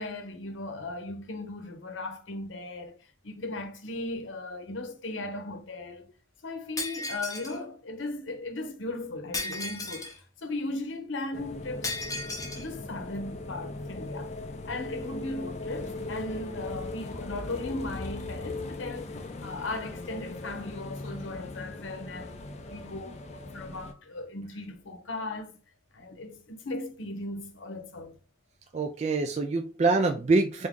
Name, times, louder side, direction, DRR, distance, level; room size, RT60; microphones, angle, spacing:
voice 1, 0.0-3.0 3.2-6.1 6.4-11.9 12.5-14.4 14.6-22.4 22.7-25.6 25.9-28.2, left 2 dB, 85° left, 0.8 m, -37 dB
Shatter, 6.8-7.6 9.3-10.2 11.8-12.7, left 2 dB, 20° left, 0.8 m, -35 dB
sound 1, 11.3-23.9, left 2 dB, 35° left, 0.4 m, -39 dB
voice 2, 28.7-30.7, right 3 dB, 35° right, 0.3 m, -25 dB
3.5 x 2.7 x 3.6 m
head